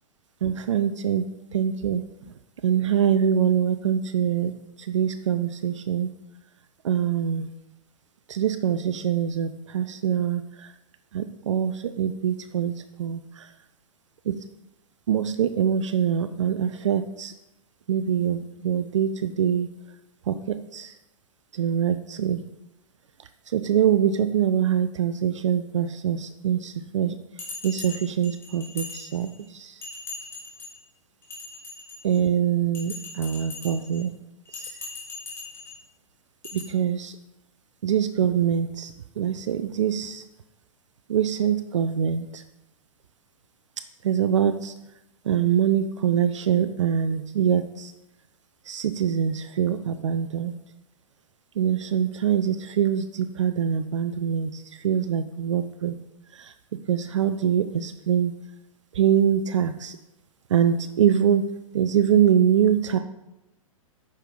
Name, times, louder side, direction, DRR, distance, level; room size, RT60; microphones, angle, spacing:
voice 1, 0.4-1.2 1.5-2.0 2.6-4.5 4.8-6.1 6.8-7.5 8.3-10.4 11.1-12.7 13.0-13.2 14.3-14.4 15.1-17.3 17.9-19.7 20.3-20.4 20.7-20.9 21.5-22.4 23.5-27.1 27.6-29.7 32.0-34.1 36.5-37.1 37.8-40.2 41.1-42.4 44.0-44.7 45.3-47.9 48.7-50.5 51.6-55.9 56.4-56.5 56.9-58.3 58.9-60.0 60.5-61.4 61.7-63.0, right 9 dB, 60° right, 10 dB, 0.5 m, -24 dB
Bell, 27.4-29.4 29.8-30.8 31.2-32.2 32.7-34.0 34.5-35.8 36.4-36.6, left 3 dB, 15° left, 3.2 m, -39 dB
9.7 x 6.4 x 3.8 m, 0.91 s
figure-of-eight pair, 105°, 18 cm